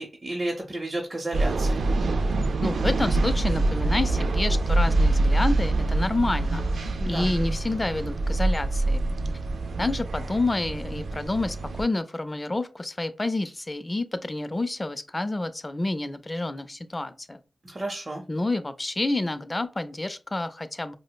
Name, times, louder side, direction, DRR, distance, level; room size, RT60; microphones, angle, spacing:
voice 1, 0.0-1.8 7.0-7.3 17.6-18.2, right 1 dB, 40° right, 0.7 m, -32 dB
sound 1, 1.3-11.8, right 2 dB, 85° right, 0.3 m, -25 dB
voice 2, 2.6-9.0 9.8-17.4 18.3-20.9, left 2 dB, 30° left, 0.4 m, -29 dB
4.8 x 2.0 x 2.2 m
cardioid pair, 55°, 0 cm